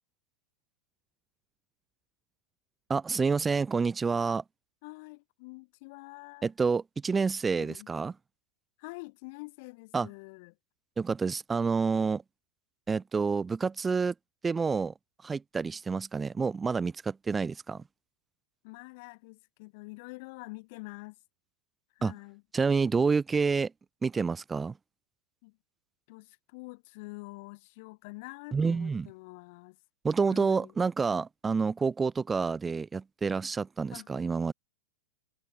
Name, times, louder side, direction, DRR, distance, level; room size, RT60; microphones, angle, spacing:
voice 1, 2.9-4.4 6.4-8.1 9.9-10.1 11.0-12.2 12.9-14.1 14.4-14.9 15.2-17.8 22.0-22.1 22.5-23.7 24.0-24.7 28.5-29.1 30.0-34.5, right 5 dB, 15° right, 1.0 m, -28 dB
voice 2, 4.8-6.5 7.6-7.9 8.8-10.5 18.6-21.2 21.9-22.4 25.4-25.6 26.1-29.8 30.3-30.7 33.9-34.1, left 27 dB, 50° left, 3.1 m, -46 dB
hypercardioid pair, 135°, 0 cm